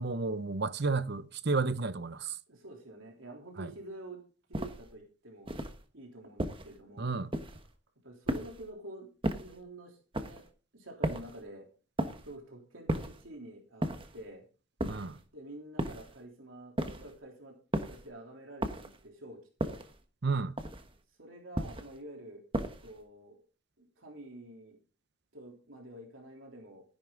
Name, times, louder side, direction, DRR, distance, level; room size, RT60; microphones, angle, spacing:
voice 1, 0.0-2.4 3.6-3.7 7.0-7.3 14.8-15.2 20.2-20.6, right 3 dB, 55° right, 0.8 m, -32 dB
voice 2, 2.5-4.2 4.5-5.5 5.9-7.1 8.0-10.0 10.2-10.4 10.7-11.7 12.2-14.4 15.3-17.6 17.8-19.8 21.2-22.4 22.8-23.4 23.8-24.8 25.3-26.8, right 1 dB, 85° right, 3.5 m, -48 dB
sound 1, 4.5-4.9 5.5-5.8 6.4-6.8 7.3-7.7 8.3-8.7 9.2-9.6 10.1-10.5 11.0-11.4 12.0-12.3 12.9-13.3 13.8-14.2 14.8-15.2 15.8-16.2 16.8-17.2 17.7-18.1 18.6-19.0 19.6-20.0 20.6-21.0 21.5-22.0 22.5-23.0, right 1 dB, 25° right, 1.2 m, -35 dB
14.0 x 10.5 x 3.9 m
head